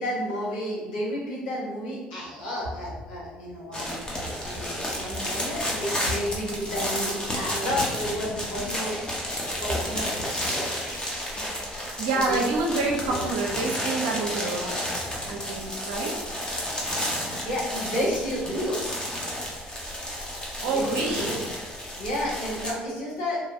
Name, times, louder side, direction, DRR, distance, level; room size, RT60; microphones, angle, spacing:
voice 1, 0.0-10.7 11.2-11.4 12.1-12.5 13.1-13.3 17.1-18.8 20.7-21.4 21.8-23.4, equal, 80° left, -6 dB, 0.9 m, -32 dB
sound 1, 3.7-22.7, equal, 20° left, 0.8 m, -31 dB
voice 2, 12.0-14.8 15.3-16.1 20.6-21.4, right 3 dB, 70° right, -1 dB, 0.5 m, -27 dB
2.9 x 2.3 x 2.6 m, 1.2 s
hypercardioid pair, 55°, 4 cm